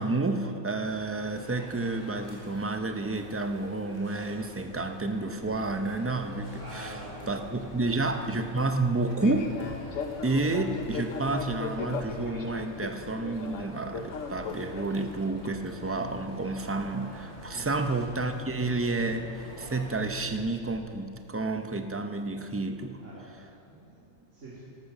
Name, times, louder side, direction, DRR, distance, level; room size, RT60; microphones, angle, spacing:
voice 1, 0.0-7.0 7.3-9.6 10.2-23.0, right 2 dB, 15° right, 7 dB, 0.4 m, -30 dB
sound 1, 0.8-20.0, equal, 35° left, 3.3 m, -48 dB
Fixed-wing aircraft airplane, 5.4-20.8, left 5 dB, 75° left, 1.3 m, -41 dB
voice 2, 6.6-7.3 7.5-7.9 8.8-8.9 17.5-17.7 23.0-24.6, right 1 dB, 65° right, -9 dB, 2.9 m, -46 dB
13.5 x 13.0 x 6.0 m, 2.6 s
omnidirectional pair, 1.4 m